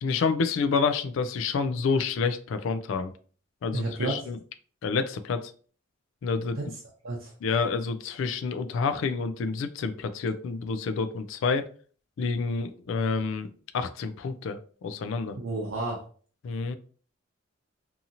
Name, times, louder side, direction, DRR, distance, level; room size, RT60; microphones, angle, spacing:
voice 1, 0.0-3.1 3.6-4.4 4.8-5.5 6.2-6.6 7.4-11.7 12.2-15.4 16.4-16.8, left 4 dB, 70° left, 11 dB, 0.3 m, -28 dB
voice 2, 3.7-4.2 6.5-6.7 7.0-7.3 15.3-16.0, right 2 dB, 70° right, -2 dB, 0.6 m, -31 dB
2.7 x 2.5 x 2.7 m, 0.43 s
head